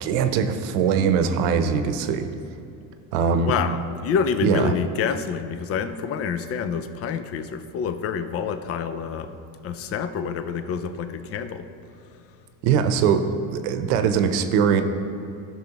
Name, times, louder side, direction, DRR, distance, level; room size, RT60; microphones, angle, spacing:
voice 1, 0.0-2.3 3.1-3.5 4.4-4.7 12.6-13.3 13.5-14.8, right 7 dB, 75° right, 8 dB, 0.9 m, -21 dB
voice 2, 3.3-9.4 9.6-11.7, left 6 dB, 30° left, 10 dB, 0.4 m, -27 dB
14.0 x 6.2 x 2.9 m, 2.6 s
supercardioid pair, 115°, 48 cm